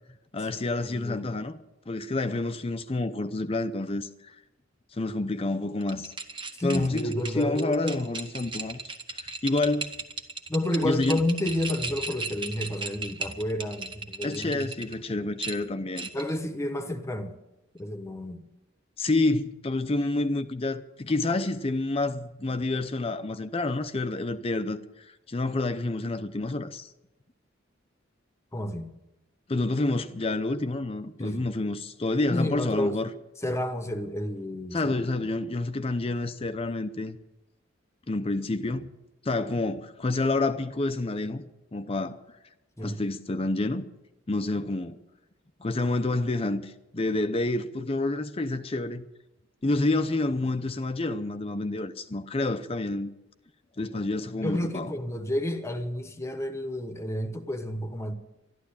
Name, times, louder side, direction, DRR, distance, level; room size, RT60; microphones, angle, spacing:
voice 1, 0.3-1.5 1.9-4.3 4.9-6.1 6.6-9.9 10.8-11.2 14.2-16.1 19.0-26.9 29.5-33.1 34.7-37.2 38.1-38.9 39.2-41.4 41.7-42.2 42.8-43.9 44.3-45.0 45.6-49.1 49.6-53.1 53.8-54.9, left 2 dB, 30° left, 0.6 m, -28 dB
voice 2, 0.8-1.2 6.6-8.0 10.5-14.7 16.1-17.3 17.7-18.4 28.5-28.9 31.2-31.5 32.3-33.0 33.4-35.1 42.8-43.0 54.3-58.1, left 1 dB, 15° left, 1.1 m, -30 dB
sound 1, 5.8-14.9 15.4-16.4, right 3 dB, 25° right, 1.2 m, -37 dB
12.5 x 12.0 x 8.7 m
head